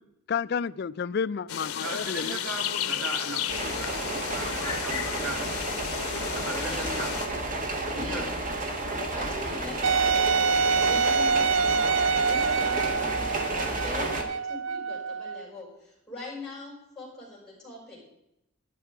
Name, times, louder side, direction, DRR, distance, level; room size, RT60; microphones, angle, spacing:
voice 1, 0.3-2.4 6.2-6.3, left 6 dB, 50° left, 15 dB, 0.3 m, -31 dB
sound 1, 1.5-7.3, left 9 dB, 90° left, 0.8 m, -33 dB
voice 2, 1.8-5.5 6.3-7.1 7.9-8.3, right 2 dB, 70° right, 1 dB, 2.8 m, -37 dB
sound 2, 3.5-14.2, right 2 dB, 35° right, 1.6 m, -31 dB
voice 3, 4.8-5.5 6.5-6.9 7.9-8.3 9.0-18.0, left 2 dB, 5° left, -6 dB, 5.7 m, -42 dB
Wind instrument woodwind instrument, 9.8-15.5, right 5 dB, 55° right, 0.4 m, -26 dB
12.0 x 11.0 x 4.8 m, 0.85 s
head